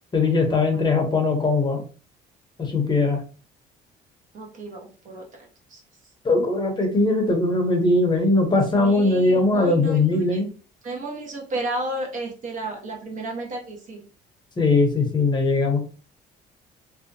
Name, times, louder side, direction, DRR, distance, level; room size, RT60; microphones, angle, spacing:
voice 1, 0.1-1.8 2.6-3.2 6.2-10.5 14.6-15.8, left 3 dB, 25° left, 3 dB, 0.7 m, -20 dB
voice 2, 4.3-5.8 8.7-10.4 10.8-14.0, right 2 dB, 50° right, 0 dB, 0.9 m, -33 dB
2.7 x 2.1 x 2.6 m, 0.37 s
cardioid pair, 110°, 17 cm